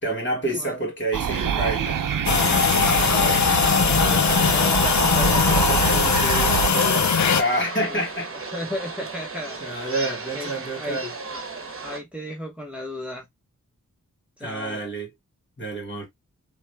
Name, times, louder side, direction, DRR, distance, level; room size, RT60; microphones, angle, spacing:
voice 1, 0.0-2.0 7.4-8.3 9.6-11.1 14.4-15.1 15.6-16.1, right 1 dB, 35° left, 2.9 m, -27 dB
sound 1, 1.1-6.7, right 8 dB, 85° right, 0.6 m, -26 dB
sound 2, 2.3-7.4, left 6 dB, 60° left, 0.7 m, -20 dB
voice 2, 2.6-6.6 7.8-8.0 8.5-9.9 10.3-11.4 11.8-13.3 14.4-14.8, left 1 dB, 5° right, 1.0 m, -35 dB
sound 3, 4.3-12.0, right 4 dB, 45° right, 1.1 m, -35 dB
4.0 x 3.3 x 3.4 m
wide cardioid pair, 95°, 32 cm